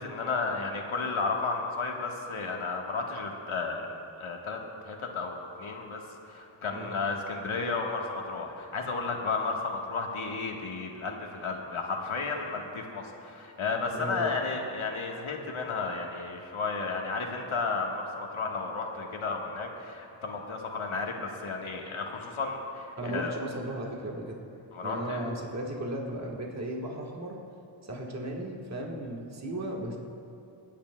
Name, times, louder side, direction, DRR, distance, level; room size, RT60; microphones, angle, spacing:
voice 1, 0.0-3.9 4.2-23.3 24.7-25.2, left 4 dB, 80° left, 1 dB, 1.4 m, -33 dB
voice 2, 13.9-14.3 23.0-24.4 24.8-27.4 27.8-30.0, right 1 dB, 35° right, -1 dB, 1.4 m, -35 dB
28.5 x 10.0 x 2.2 m, 2.8 s
wide cardioid pair, 115°, 48 cm